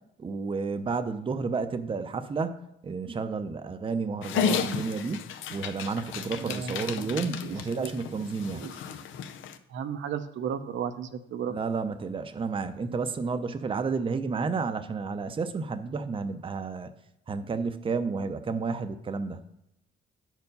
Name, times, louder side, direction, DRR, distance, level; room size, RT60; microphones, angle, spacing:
voice 1, 0.2-8.7 11.5-16.9 17.3-19.4, right 4 dB, 25° right, 9 dB, 0.6 m, -31 dB
Dog, 4.2-9.6, left 7 dB, 85° left, 0.6 m, -33 dB
voice 2, 6.4-7.9 8.5-8.8 9.7-11.5, right 8 dB, 70° right, 8 dB, 0.8 m, -35 dB
9.3 x 4.6 x 5.3 m, 0.83 s
cardioid pair, 90°, 20 cm